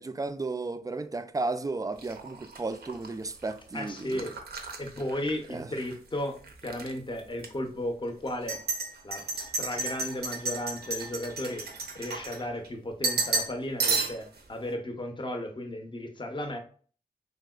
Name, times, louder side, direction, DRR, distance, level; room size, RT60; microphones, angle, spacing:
voice 1, 0.0-4.3 5.5-5.7, right 3 dB, 20° right, 0.3 m, -34 dB
sound 1, 2.0-5.9 6.3-6.9 7.4-7.5 8.3-12.7 13.0-13.5 13.8-14.4, right 4 dB, 85° right, 0.5 m, -33 dB
voice 2, 3.7-4.4 4.8-8.6 9.0-11.6 11.9-16.6, left 1 dB, 30° left, 0.7 m, -35 dB
3.2 x 2.8 x 2.3 m
cardioid pair, 40°, 16 cm